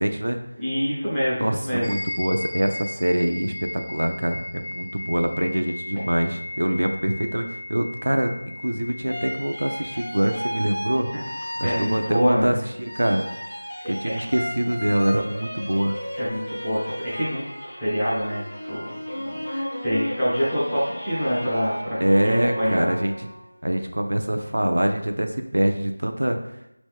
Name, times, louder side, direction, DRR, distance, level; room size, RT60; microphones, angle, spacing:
voice 1, 0.0-0.4 1.4-7.4 7.7-8.3 8.6-11.1 11.6-13.3 13.9-16.0 22.0-23.3 23.6-26.4, right 1 dB, 75° right, 5 dB, 0.5 m, -24 dB
voice 2, 0.6-2.0 11.6-12.6 14.0-14.1 16.2-22.0 22.2-22.9, equal, ahead, -17 dB, 0.4 m, -26 dB
sound 1, 1.8-10.5, left 1 dB, 80° left, 1.0 m, -36 dB
sound 2, 9.1-12.5 12.8-23.4, equal, 50° left, 1.0 m, -33 dB
3.5 x 3.1 x 3.4 m, 0.84 s
figure-of-eight pair, 180°, 0 cm